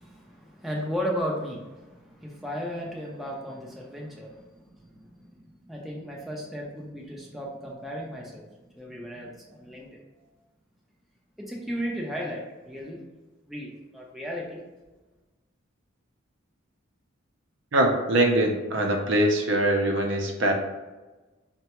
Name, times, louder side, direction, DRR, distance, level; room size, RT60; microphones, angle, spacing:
voice 1, 0.0-10.0 11.4-13.0 13.5-14.6, equal, ahead, -3 dB, 0.5 m, -35 dB
voice 2, 17.7-20.5, right 1 dB, 60° right, 2 dB, 0.6 m, -23 dB
5.7 x 2.2 x 2.9 m, 1.2 s
head